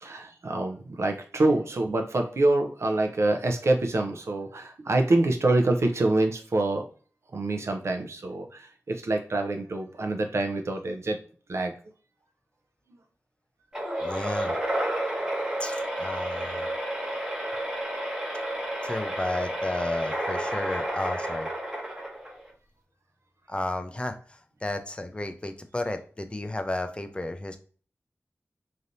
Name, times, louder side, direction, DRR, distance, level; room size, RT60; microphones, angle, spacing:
voice 1, 0.0-6.9 7.3-11.2 11.5-11.7, right 2 dB, 65° right, 4 dB, 0.6 m, -26 dB
sound 1, 13.7-22.5, right 1 dB, 10° right, 0.9 m, -31 dB
voice 2, 14.0-14.6 15.6-16.7 18.8-21.5 23.5-27.6, left 1 dB, 20° left, 7 dB, 0.4 m, -33 dB
3.2 x 2.7 x 2.6 m, 0.42 s
wide cardioid pair, 80°, 5 cm